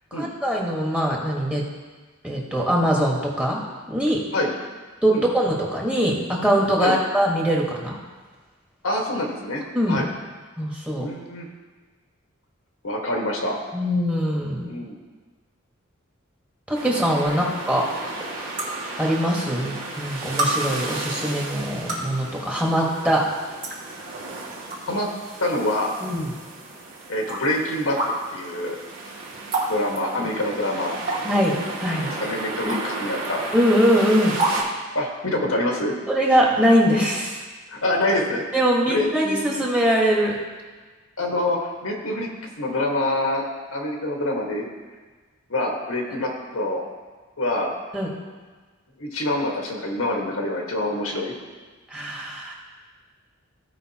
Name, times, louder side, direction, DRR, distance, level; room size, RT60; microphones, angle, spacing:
voice 1, 0.1-1.6 2.2-3.6 3.9-4.2 5.0-8.0 9.7-10.0 10.6-11.1 13.7-14.7 16.7-17.9 19.0-23.3 26.0-26.3 30.2-30.3 31.2-32.1 32.6-32.7 33.5-34.3 36.1-37.4 38.5-40.4 47.9-48.1 51.9-52.5, equal, 5° right, -3 dB, 1.4 m, -22 dB
voice 2, 8.8-9.6 9.9-10.1 10.9-11.5 12.8-13.6 14.6-15.0 17.3-17.4 24.9-25.1 25.4-25.9 27.1-28.0 28.3-28.8 29.7-30.9 32.2-33.4 34.9-35.9 37.7-38.4 38.9-39.6 41.2-42.3 42.6-43.4 43.7-44.7 45.5-46.8 47.4-47.7 49.0-51.3, left 1 dB, 90° left, 0 dB, 1.6 m, -25 dB
sound 1, 16.7-34.6, right 2 dB, 70° right, 2.0 m, -34 dB
sound 2, 17.2-17.3 18.6-18.7 19.7-19.8 20.4-20.5 21.7-22.1 23.1-23.2 23.6-23.8 24.5-24.8 25.3-25.4 26.3-26.4 27.3-27.4 28.0-28.1 29.5-29.7 30.0-30.1 31.1-31.5 32.7-32.9 33.2-33.3 34.4-34.6, right 2 dB, 45° right, 1.8 m, -25 dB
15.5 x 5.2 x 2.9 m, 1.4 s
head